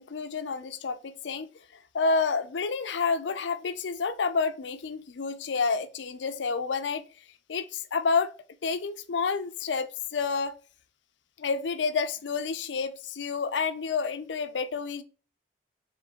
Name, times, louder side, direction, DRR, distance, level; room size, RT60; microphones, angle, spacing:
voice 1, 0.0-1.5 1.9-7.0 7.5-8.3 8.6-10.5 11.4-15.0, left 4 dB, 85° left, 0.5 m, -29 dB
3.8 x 3.2 x 3.4 m
head